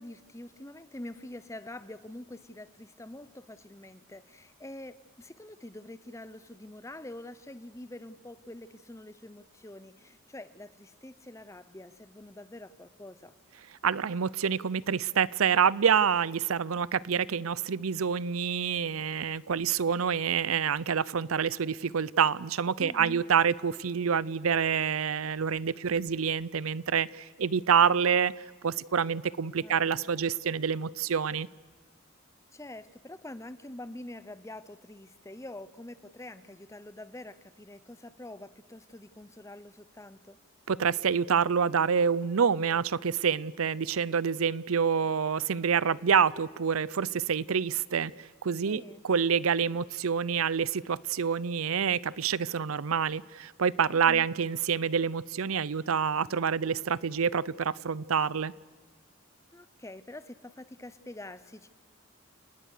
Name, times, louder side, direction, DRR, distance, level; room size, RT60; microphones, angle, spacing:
voice 1, 0.0-13.3 22.8-23.2 29.6-30.1 32.5-40.4 48.7-49.0 53.9-54.3 59.5-61.7, left 1 dB, 15° left, 0.8 m, -45 dB
voice 2, 13.8-28.3 28.6-31.5 40.7-58.5, right 7 dB, 85° right, 0.6 m, -27 dB
30.0 x 19.0 x 6.7 m
head